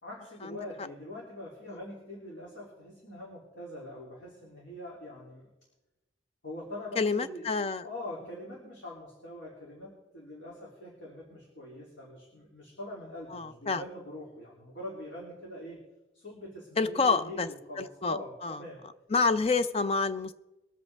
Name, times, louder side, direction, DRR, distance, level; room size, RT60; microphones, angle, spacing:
voice 1, 0.0-5.5 6.4-15.8 16.1-18.8, left 1 dB, 75° left, -4 dB, 3.1 m, -43 dB
voice 2, 7.0-7.9 13.3-13.8 16.8-17.5 17.8-18.6 19.1-20.3, left 4 dB, 35° left, 12 dB, 0.5 m, -28 dB
23.0 x 7.9 x 3.5 m, 1.0 s
head